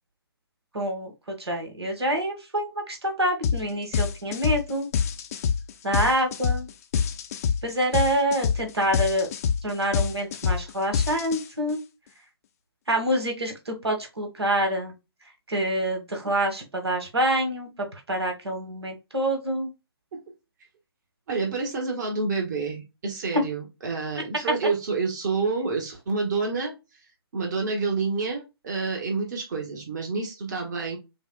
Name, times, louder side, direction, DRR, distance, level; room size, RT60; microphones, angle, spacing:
voice 1, 0.7-4.9 5.8-6.7 7.6-9.3 9.6-11.8 12.9-14.9 15.5-19.7 23.3-23.4, right 1 dB, 80° right, 3 dB, 1.8 m, -26 dB
sound 1, 3.4-3.6 3.9-11.7, left 7 dB, 35° left, 0.6 m, -26 dB
voice 2, 21.3-26.7 27.3-31.0, right 4 dB, 45° right, 2 dB, 1.6 m, -28 dB
7.1 x 2.5 x 2.3 m, 0.25 s
figure-of-eight pair, 135°, 13 cm